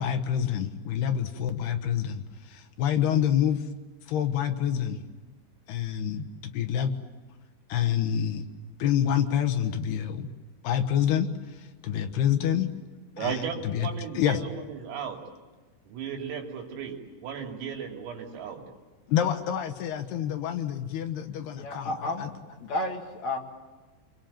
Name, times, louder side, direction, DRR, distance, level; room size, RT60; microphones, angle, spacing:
voice 1, 0.0-3.7 4.1-5.0 5.7-6.9 7.7-8.5 8.8-10.3 10.6-12.7 13.2-13.9 14.1-14.4 19.1-22.3, left 9 dB, 70° left, 6 dB, 2.8 m, -27 dB
voice 2, 13.2-15.2 15.9-18.6, right 7 dB, 85° right, 2 dB, 5.6 m, -35 dB
voice 3, 21.6-23.4, left 2 dB, 50° left, 2 dB, 2.2 m, -32 dB
28.0 x 22.5 x 9.0 m, 1.3 s
omnidirectional pair, 5.8 m